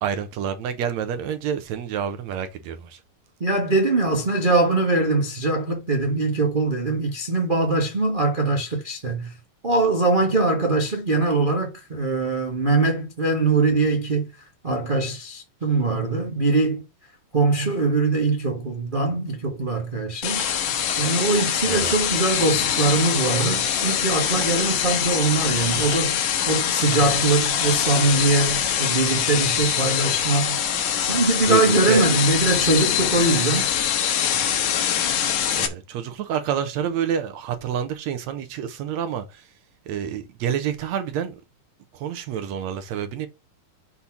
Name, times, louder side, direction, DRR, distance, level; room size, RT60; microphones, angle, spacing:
voice 1, 0.0-3.0 21.7-21.9 31.5-32.1 35.5-39.4 39.9-41.4 41.9-43.3, right 8 dB, 70° right, 1.9 m, -28 dB
voice 2, 3.4-9.3 9.6-14.3 14.6-16.8 17.3-20.5 21.0-30.6 31.0-33.7, right 3 dB, 40° right, 0.6 m, -22 dB
sound 1, 20.2-35.7, left 9 dB, 80° left, 2.8 m, -24 dB
Tick-tock, 20.4-20.5 20.9-21.0 21.4-21.5 21.9-22.0 22.4-22.5 22.9-23.0 23.4-23.5 23.9-24.0 24.4-24.5 24.9-25.0 25.4-25.5 25.9-26.0 26.4-26.5 26.9-27.0 27.5-27.6 28.0-28.1, left 4 dB, 35° left, 1.2 m, -37 dB
7.1 x 4.1 x 5.9 m
omnidirectional pair, 3.7 m